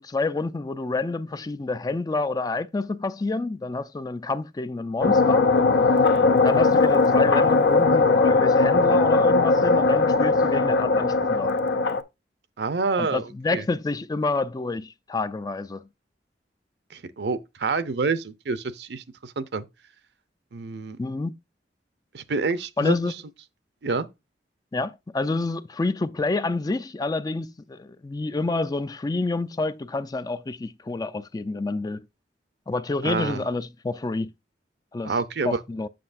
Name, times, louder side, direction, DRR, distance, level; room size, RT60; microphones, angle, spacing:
voice 1, 0.0-5.5 5.8-5.9 6.4-11.6 13.0-15.8 21.0-21.4 22.8-23.1 24.7-32.0 32.7-34.3 34.9-35.1 35.4-35.9, left 3 dB, 20° left, 0.4 m, -28 dB
sound 1, 5.0-12.0, left 3 dB, 75° left, 0.6 m, -19 dB
voice 2, 12.6-13.2 13.5-13.6 16.9-19.7 20.5-21.0 22.1-23.0 23.8-24.1 33.0-33.4 35.0-35.6, right 4 dB, 65° right, 0.6 m, -27 dB
7.7 x 6.2 x 2.5 m
head